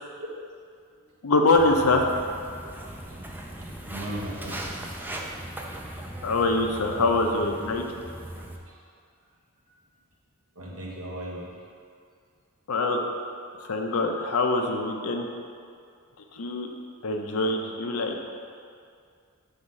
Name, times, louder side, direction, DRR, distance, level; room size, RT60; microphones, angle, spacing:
voice 1, 1.2-2.1 6.2-7.8 12.7-13.0 13.7-15.3 16.3-16.7 17.0-18.3, left 2 dB, 90° left, 2 dB, 0.6 m, -24 dB
Walk footsteps, 1.5-8.6, right 1 dB, 10° right, 0.4 m, -39 dB
voice 2, 3.5-5.2 6.9-7.2 8.7-8.8 10.5-11.6, right 1 dB, 80° right, -5 dB, 1.5 m, -37 dB
6.4 x 3.5 x 5.6 m, 2.2 s
head